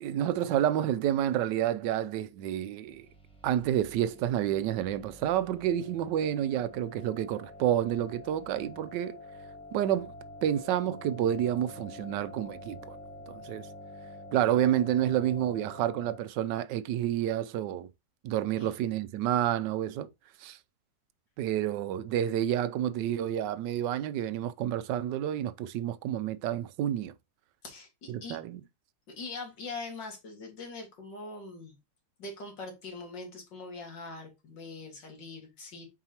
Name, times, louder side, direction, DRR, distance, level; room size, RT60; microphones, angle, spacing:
voice 1, 0.0-3.1 3.4-9.2 9.7-10.1 10.4-13.0 13.3-13.7 14.3-17.9 18.2-20.1 20.4-20.6 21.4-27.1 28.1-28.6, right 11 dB, 80° right, 1.2 m, -29 dB
sound 1, 2.9-16.2, left 2 dB, 5° left, 1.1 m, -48 dB
voice 2, 29.1-31.7 32.2-35.9, left 3 dB, 85° left, 2.7 m, -42 dB
7.5 x 4.8 x 2.9 m
omnidirectional pair, 1.9 m